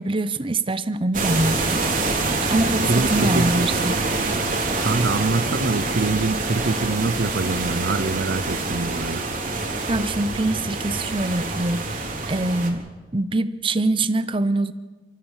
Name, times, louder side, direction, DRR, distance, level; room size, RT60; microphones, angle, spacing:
voice 1, 0.0-1.8 2.4-4.0 9.9-12.8 13.1-14.7, right 2 dB, 30° right, 14 dB, 0.7 m, -24 dB
sound 1, 1.1-12.7, right 3 dB, 50° right, 3.3 m, -25 dB
voice 2, 2.9-3.7 4.8-9.2, right 3 dB, 70° right, 15 dB, 0.8 m, -24 dB
30.0 x 14.0 x 7.3 m, 1.3 s
head